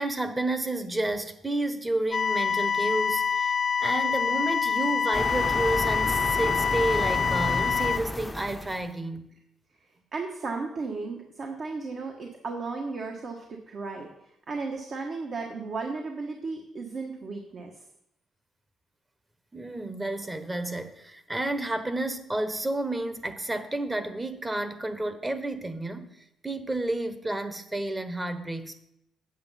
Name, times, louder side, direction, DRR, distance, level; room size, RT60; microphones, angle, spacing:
voice 1, 0.0-3.5 3.8-9.3 19.5-28.8, right 2 dB, 15° right, 1.1 m, -31 dB
sound 1, 2.1-8.0, left 6 dB, 40° left, 0.4 m, -26 dB
sound 2, 5.1-8.9, left 1 dB, 15° left, 0.7 m, -32 dB
voice 2, 10.1-14.1 14.5-17.7, right 4 dB, 50° right, 1.4 m, -34 dB
8.7 x 7.9 x 5.7 m
cardioid pair, 90°, 0 cm